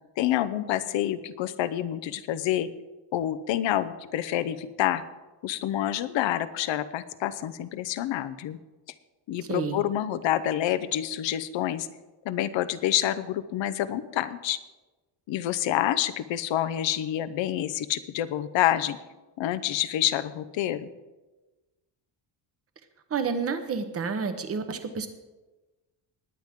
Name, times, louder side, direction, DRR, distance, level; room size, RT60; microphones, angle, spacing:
voice 1, 0.2-2.7 3.1-5.0 5.4-8.6 9.3-11.9 12.2-14.6 15.3-19.0 19.4-20.9, left 12 dB, 75° left, 12 dB, 0.9 m, -27 dB
voice 2, 9.5-9.8 23.1-25.1, right 5 dB, 30° right, 8 dB, 1.1 m, -29 dB
20.0 x 9.2 x 3.7 m, 1.2 s
cardioid pair, 155°, 45 cm